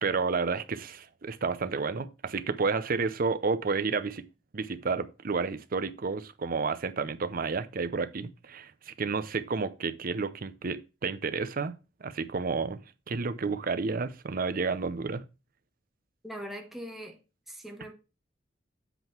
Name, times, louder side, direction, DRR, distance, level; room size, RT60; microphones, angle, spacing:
voice 1, 0.0-4.2 4.5-11.7 12.0-12.8 13.1-15.2, right 4 dB, 50° right, 0.6 m, -31 dB
voice 2, 16.2-17.2 17.5-17.9, equal, ahead, 0.9 m, -41 dB
8.0 x 3.8 x 4.4 m
head